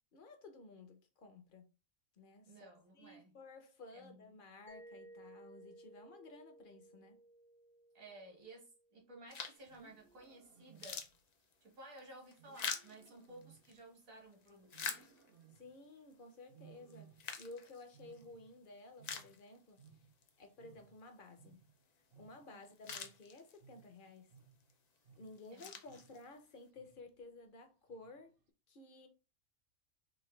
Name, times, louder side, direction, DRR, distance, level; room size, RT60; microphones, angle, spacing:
voice 1, 0.1-1.7 2.1-7.2 15.5-19.8 20.4-21.6 22.2-24.3 25.2-28.4 28.7-29.1, left 3 dB, 50° left, 0.7 m, -55 dB
voice 2, 2.5-3.4 3.9-4.3 7.9-11.1 11.6-14.8 25.5-25.6, right 2 dB, 75° right, 1.9 m, -56 dB
Mallet percussion, 4.7-9.3, right 1 dB, 15° left, 0.4 m, -59 dB
sound 1, 9.3-9.8 10.2-10.3 10.6-13.8 14.3-15.6 16.1-16.2 16.9-18.3 18.7-18.8 19.0-19.9 20.2-20.3 22.3-22.4 22.6-23.8 24.4-24.7 25.2-26.5, left 6 dB, 85° left, 0.3 m, -45 dB
Wild animals, 9.6-11.3 12.4-14.2 14.7-15.9 16.5-17.5 17.8-20.3 20.6-25.5 25.9-26.3 26.7-27.2 27.9-28.3, right 7 dB, 60° right, 0.6 m, -63 dB
3.9 x 2.6 x 3.1 m
omnidirectional pair, 1.4 m